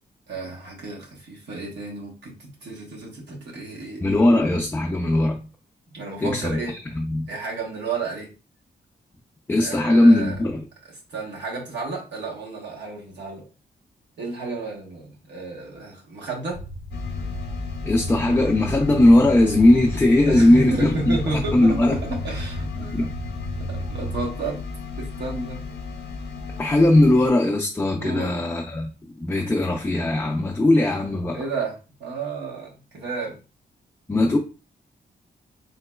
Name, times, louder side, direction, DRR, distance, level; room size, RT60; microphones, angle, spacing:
voice 1, 0.3-4.4 5.9-6.8 7.3-8.3 9.6-10.4 10.8-13.5 14.2-16.6 20.2-23.1 23.6-24.6 25.0-25.6 28.0-28.4 31.3-33.4, right 3 dB, 85° right, 1.2 m, -32 dB
voice 2, 4.0-5.4 6.2-6.6 7.0-7.3 9.5-10.6 17.8-22.0 22.9-23.1 26.6-28.9 29.2-31.4 34.1-34.4, left 1 dB, 10° left, 0.3 m, -19 dB
sound 1, 16.5-24.3, equal, 45° right, 0.5 m, -34 dB
sound 2, 16.9-27.3, left 4 dB, 70° left, 0.6 m, -34 dB
3.8 x 2.8 x 2.2 m
wide cardioid pair, 160°, 18 cm